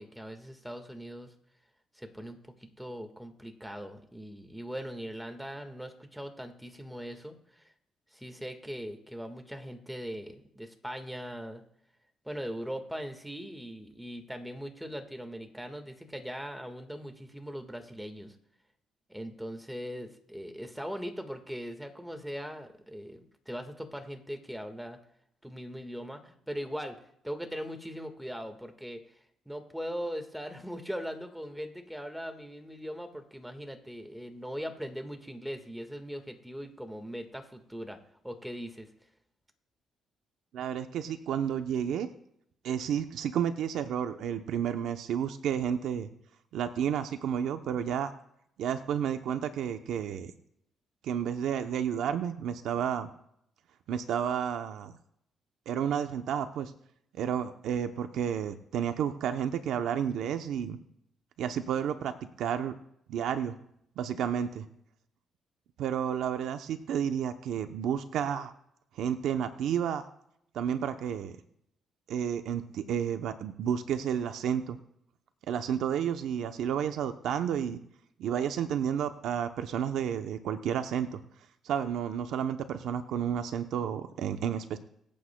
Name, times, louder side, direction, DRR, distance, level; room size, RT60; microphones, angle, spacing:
voice 1, 0.0-1.3 1.9-7.7 8.1-11.6 12.2-18.3 19.1-23.2 23.4-25.0 25.4-29.2 29.4-38.0 38.2-38.9, equal, ahead, 6 dB, 1.6 m, -40 dB
voice 2, 40.5-42.1 42.6-46.1 46.5-48.1 48.6-50.3 51.0-53.1 53.9-54.9 55.7-56.7 57.1-60.8 61.4-62.1 62.4-62.7 63.1-63.6 64.0-64.7 65.8-68.5 68.9-70.0 70.5-71.4 72.1-74.8 75.5-77.8 78.2-81.2 81.6-84.8, right 8 dB, 80° right, 8 dB, 0.7 m, -31 dB
25.0 x 8.6 x 2.2 m, 0.73 s
cardioid pair, 90°, 0 cm